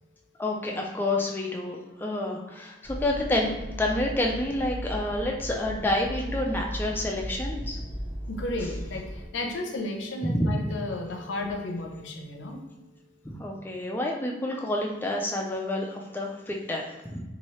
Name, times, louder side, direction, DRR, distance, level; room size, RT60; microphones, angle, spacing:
voice 1, 0.4-7.8 10.2-10.6 13.2-17.2, left 1 dB, 10° left, -1 dB, 0.3 m, -29 dB
sound 1, 2.8-9.2, equal, 30° right, 0.9 m, -36 dB
voice 2, 8.3-12.6, left 2 dB, 85° left, 2 dB, 0.6 m, -33 dB
2.9 x 2.6 x 3.1 m, 1.1 s
head